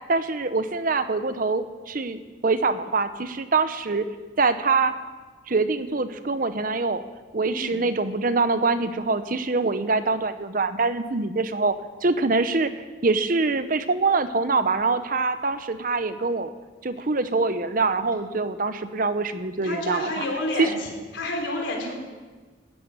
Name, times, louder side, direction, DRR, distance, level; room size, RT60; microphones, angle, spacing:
voice 1, 0.1-4.0 4.4-4.9 5.5-7.0 7.3-11.7 12.0-12.7 13.0-16.5 16.8-20.2 20.6-20.7, right 3 dB, 45° right, 11 dB, 0.7 m, -24 dB
voice 2, 19.6-21.9, left 2 dB, 70° left, 1 dB, 3.8 m, -29 dB
13.0 x 11.0 x 9.0 m, 1.3 s
head